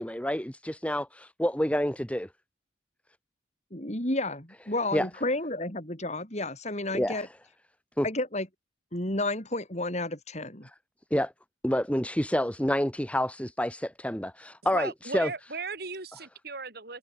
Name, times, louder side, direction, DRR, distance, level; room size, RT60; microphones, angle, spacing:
voice 1, 0.0-2.3 4.9-5.1 6.9-7.3 8.0-8.1 11.1-11.3 11.6-15.3, equal, 5° left, 2.9 m, -28 dB
voice 2, 3.7-7.3 8.0-8.5 8.9-10.7, left 2 dB, 35° left, 6.0 m, -31 dB
voice 3, 14.6-17.0, right 4 dB, 55° right, 4.0 m, -37 dB
head